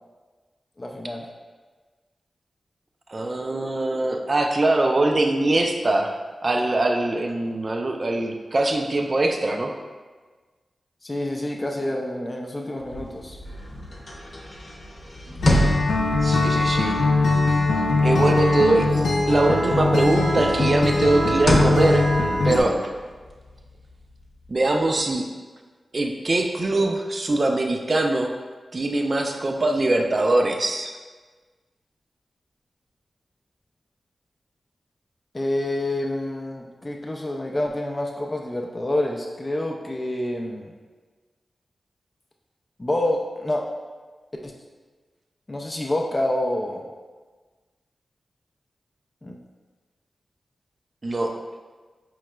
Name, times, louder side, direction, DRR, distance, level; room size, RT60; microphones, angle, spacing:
voice 1, 0.8-1.3 11.0-13.4 35.3-40.7 42.8-43.7 44.4-44.5 45.5-46.8 49.2-49.3, left 1 dB, 25° left, 0 dB, 0.4 m, -27 dB
voice 2, 3.1-6.1 6.4-9.7 16.2-17.0 18.0-18.9 19.3-22.1 22.4-22.9 24.5-25.2 25.9-28.3 28.7-30.9 51.0-51.4, right 2 dB, 45° right, 4 dB, 0.4 m, -22 dB
sound 1, 12.8-19.3 19.6-25.0, equal, 55° left, 0.7 m, -29 dB
Acoustic guitar, 15.4-22.6, left 2 dB, 90° left, 0.5 m, -21 dB
4.7 x 3.0 x 2.2 m, 1.4 s
cardioid pair, 70°, 0 cm